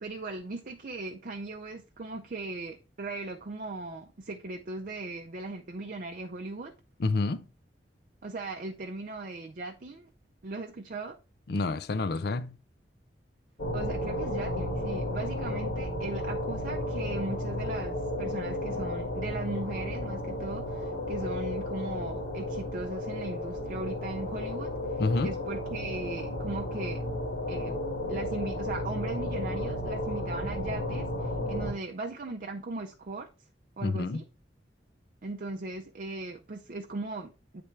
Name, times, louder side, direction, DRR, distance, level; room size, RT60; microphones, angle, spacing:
voice 1, 0.0-6.7 8.2-10.1 10.4-11.2 13.7-27.0 27.5-27.8 28.1-33.3 33.8-34.2 35.2-37.6, right 3 dB, 50° right, 0.5 m, -38 dB
voice 2, 7.0-7.4 11.5-12.6 25.0-25.3 33.8-34.2, left 3 dB, 60° left, 0.5 m, -28 dB
sound 1, 13.6-31.7, left 1 dB, 85° left, 1.9 m, -33 dB
8.5 x 3.4 x 4.4 m
head